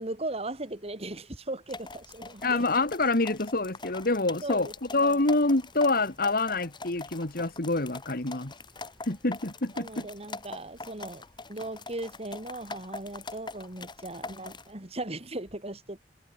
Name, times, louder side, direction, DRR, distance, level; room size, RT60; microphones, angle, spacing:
voice 1, 0.0-2.6 4.4-4.7 5.0-5.2 9.7-16.0, right 2 dB, 35° right, 2.8 m, -38 dB
sound 1, 1.7-14.7, left 3 dB, 25° left, 5.1 m, -43 dB
voice 2, 2.4-8.5 9.1-10.1, left 2 dB, 55° left, 1.9 m, -26 dB
head